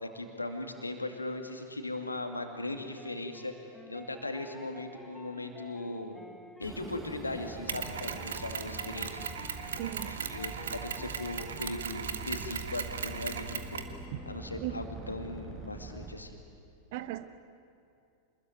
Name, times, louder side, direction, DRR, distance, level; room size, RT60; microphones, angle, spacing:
voice 1, 0.0-3.5 3.9-6.2 6.6-9.3 10.0-13.8 14.3-16.4, left 2 dB, 80° left, 5 dB, 2.4 m, -38 dB
sound 1, 3.0-11.8, equal, 5° left, 1.6 m, -51 dB
sound 2, 6.6-16.1, right 2 dB, 15° right, 5.0 m, -45 dB
Mechanisms, 7.7-14.0, right 7 dB, 65° right, 1.6 m, -38 dB
voice 2, 9.8-10.3 14.6-14.7 16.9-17.3, right 15 dB, 50° right, 12 dB, 1.2 m, -36 dB
26.0 x 21.0 x 9.4 m, 2.5 s
figure-of-eight pair, 90°, 0 cm